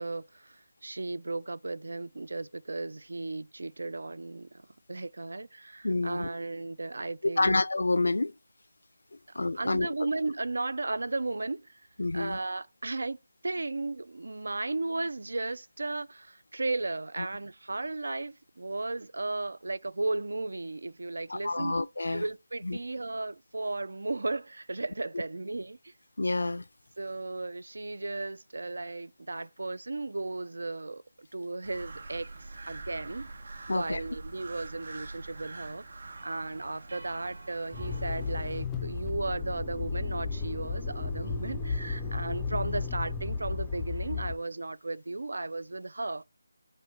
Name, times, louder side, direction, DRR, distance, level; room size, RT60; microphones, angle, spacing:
voice 1, 0.0-4.6 4.9-7.6 9.3-11.8 12.1-13.2 13.4-21.8 22.1-25.9 27.0-33.3 33.7-35.8 36.2-46.2, right 2 dB, 75° right, 0.3 m, -35 dB
voice 2, 5.8-6.3 7.4-8.3 9.4-9.9 12.0-12.4 21.3-22.2 22.6-22.8 26.2-26.6 33.7-34.0, left 2 dB, 80° left, 0.4 m, -28 dB
sound 1, 31.6-38.6, right 3 dB, 55° right, 0.9 m, -44 dB
Motor vehicle (road), 37.7-44.4, left 4 dB, 5° left, 0.3 m, -34 dB
4.2 x 2.6 x 4.4 m
figure-of-eight pair, 175°, 0 cm